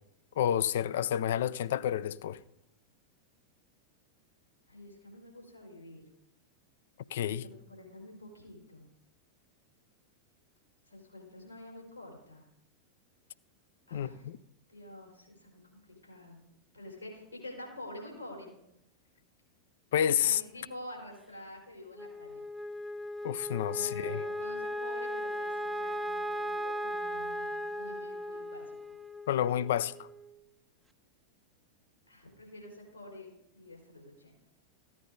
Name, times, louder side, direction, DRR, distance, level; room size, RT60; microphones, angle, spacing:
voice 1, 0.4-2.4 7.1-7.4 13.9-14.1 19.9-20.4 23.2-24.2 29.3-30.1, left 10 dB, 55° left, 0.4 m, -29 dB
voice 2, 4.7-6.0 7.2-8.9 10.9-12.5 13.9-14.3 14.7-16.4 16.7-18.5 20.2-22.4 23.7-28.8 32.1-34.4, left 1 dB, 90° left, 4.6 m, -48 dB
Wind instrument woodwind instrument, 21.9-30.4, equal, 5° right, 0.6 m, -37 dB
15.0 x 9.6 x 3.9 m
figure-of-eight pair, 90°, 0 cm